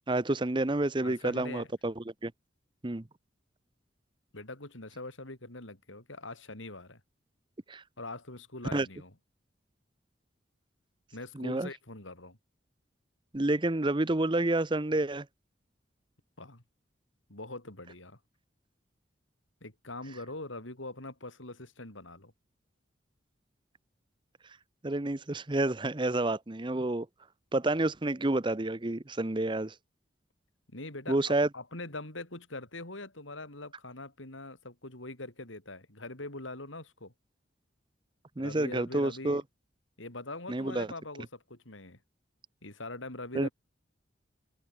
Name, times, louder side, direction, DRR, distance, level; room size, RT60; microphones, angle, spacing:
voice 1, 0.1-2.3 2.8-3.0 7.7-7.8 8.7-8.9 11.3-11.7 13.3-15.3 24.8-27.1 27.5-29.7 31.1-31.5 38.4-39.4 40.5-40.9 43.3-43.5, right 2 dB, 25° right, 0.8 m, -29 dB
voice 2, 1.0-1.7 4.3-7.0 8.0-9.1 11.1-12.4 16.4-16.6 17.3-18.2 19.6-22.3 30.7-37.1 38.4-39.4 40.0-42.0 42.6-43.5, left 2 dB, 90° left, 5.3 m, -43 dB
open air
head